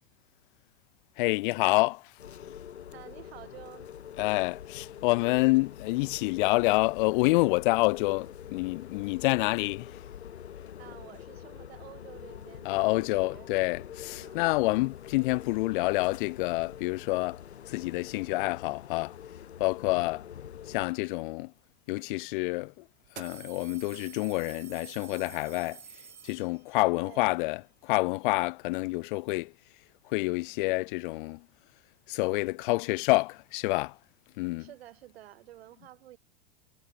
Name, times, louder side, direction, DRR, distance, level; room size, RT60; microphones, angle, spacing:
voice 1, 1.2-2.0 4.2-10.0 12.7-17.4 17.7-19.1 19.6-20.3 20.7-21.5 21.9-22.7 23.2-25.8 26.2-29.5 30.1-31.4 32.1-33.9 34.4-34.7, left 23 dB, 50° left, 0.5 m, -28 dB
sound 1, 2.2-20.9, left 9 dB, 80° left, 4.5 m, -45 dB
voice 2, 2.9-3.9 10.8-13.5 14.1-14.4 27.0-27.4 34.6-36.2, right 14 dB, 70° right, 4.3 m, -50 dB
sound 2, 22.0-22.1 23.0-26.8, right 7 dB, 85° right, 1.5 m, -48 dB
hypercardioid pair, 90°, 32 cm